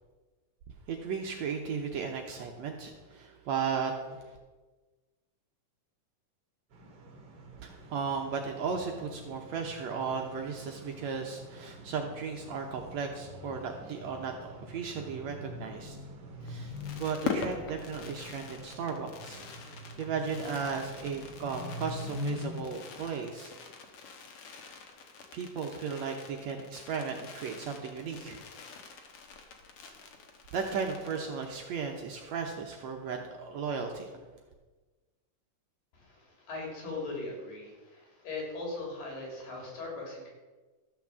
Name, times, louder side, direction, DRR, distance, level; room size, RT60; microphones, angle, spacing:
voice 1, 0.9-4.4 7.6-16.0 16.5-16.7 17.0-19.4 19.6-23.5 25.3-28.4 30.5-34.1, right 5 dB, 65° right, 2 dB, 1.8 m, -35 dB
sound 1, 6.7-22.6, left 2 dB, 50° right, 2.6 m, -45 dB
Fireworks, 16.4-31.6 31.9-32.0 32.2-32.5, left 5 dB, 55° left, 1.8 m, -43 dB
voice 2, 35.9-40.3, left 2 dB, 75° left, -1 dB, 5.0 m, -39 dB
13.5 x 6.0 x 7.4 m, 1.3 s
omnidirectional pair, 4.0 m